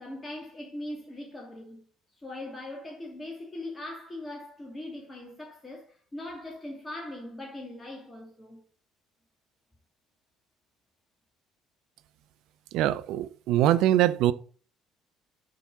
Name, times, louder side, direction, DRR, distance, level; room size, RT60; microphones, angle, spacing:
voice 1, 0.0-1.8 2.2-8.6, left 1 dB, 20° left, 2.5 m, -40 dB
voice 2, 12.7-14.3, right 13 dB, 60° right, 0.5 m, -23 dB
7.5 x 6.0 x 4.0 m
figure-of-eight pair, 55°, 0 cm